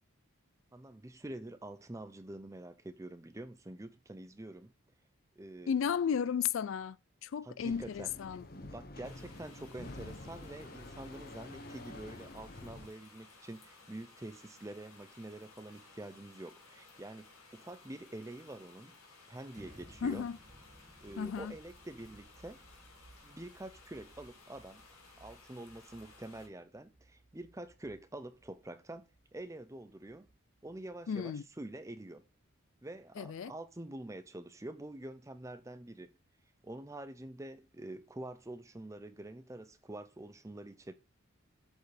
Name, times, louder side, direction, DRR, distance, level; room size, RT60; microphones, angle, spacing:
voice 1, 0.7-4.7 5.4-5.7 7.4-8.1 8.7-18.9 19.3-20.3 21.0-22.6 23.2-24.8 25.2-29.1 29.3-30.3 30.6-32.2 32.8-36.1 36.6-40.9, right 1 dB, 15° right, 0.5 m, -46 dB
voice 2, 5.7-7.0 7.2-8.5 20.0-20.4 21.2-21.6 31.1-31.4 33.2-33.5, left 7 dB, 65° left, 0.3 m, -34 dB
sound 1, 7.7-12.9, left 2 dB, 45° left, 0.8 m, -48 dB
sound 2, 9.0-26.5, left 3 dB, 90° left, 2.3 m, -59 dB
sound 3, 19.5-31.3, right 1 dB, 35° right, 1.6 m, -61 dB
7.9 x 4.7 x 3.3 m
head